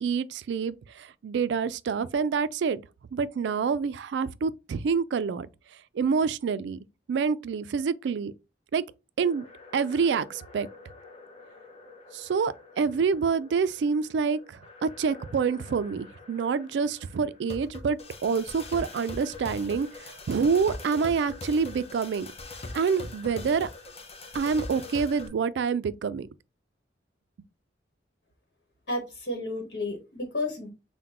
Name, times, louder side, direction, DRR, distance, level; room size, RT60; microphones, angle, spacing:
voice 1, 0.0-2.8 3.1-5.5 5.9-6.8 7.1-8.3 8.7-8.8 9.2-9.4 9.7-10.7 12.1-22.3 22.7-23.7 24.3-26.3, right 5 dB, 75° right, 0.3 m, -27 dB
sound 1, 9.3-25.3, left 2 dB, 35° left, 0.7 m, -43 dB
voice 2, 28.9-30.7, left 2 dB, 65° left, 1.2 m, -32 dB
5.8 x 2.2 x 2.9 m
head